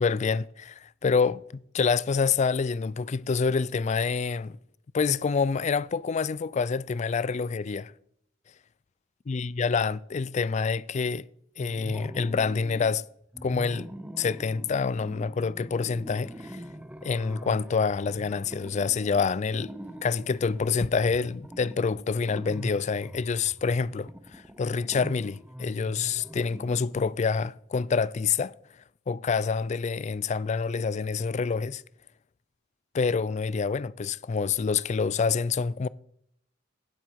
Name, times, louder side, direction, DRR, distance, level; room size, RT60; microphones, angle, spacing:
voice 1, 0.0-4.6 4.9-7.9 9.3-11.2 11.6-13.0 13.4-13.9 14.2-16.6 17.0-19.7 20.0-28.5 29.1-31.8 32.9-35.9, left 5 dB, 35° left, 0.3 m, -27 dB
sound 1, 11.6-13.0 13.3-27.2, equal, 5° right, 0.7 m, -43 dB
16.5 x 7.8 x 4.7 m
head